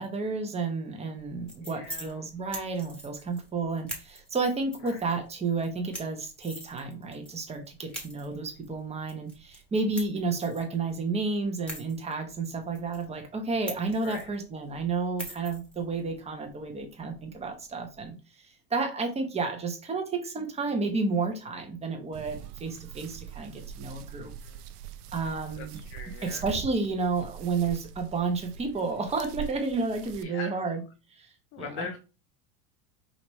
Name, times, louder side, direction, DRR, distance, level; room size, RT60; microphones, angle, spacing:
voice 1, 0.0-18.1 18.7-24.3 25.1-25.8 26.2-30.8 31.1-31.3 31.6-31.9, right 4 dB, 15° right, 3 dB, 0.9 m, -31 dB
sound 1, 1.2-18.1, right 1 dB, ahead, 1.3 m, -46 dB
voice 2, 1.6-2.2 4.8-5.0 8.4-8.5 14.0-14.3 24.2-24.6 25.2-26.5 30.2-30.7 31.5-32.0, left 5 dB, 30° left, 6 dB, 0.4 m, -42 dB
sound 2, 22.1-30.2, right 9 dB, 85° right, 0.7 m, -43 dB
5.2 x 2.9 x 3.1 m, 0.32 s
supercardioid pair, 135°, 45 cm